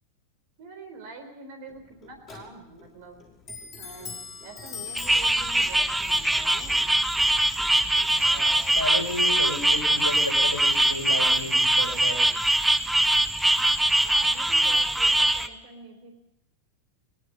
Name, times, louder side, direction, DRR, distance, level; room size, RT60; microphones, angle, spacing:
voice 1, 0.6-3.2 3.8-6.9 14.0-16.1, right 3 dB, 50° right, 6 dB, 4.1 m, -45 dB
Clock, 1.7-11.0, left 6 dB, 25° left, 5.3 m, -45 dB
sound 1, 5.0-15.5, right 1 dB, 5° right, 1.3 m, -22 dB
voice 2, 8.2-12.2, left 1 dB, 90° right, 5 dB, 6.3 m, -32 dB
22.5 x 21.5 x 6.7 m, 0.84 s
figure-of-eight pair, 90°, 0 cm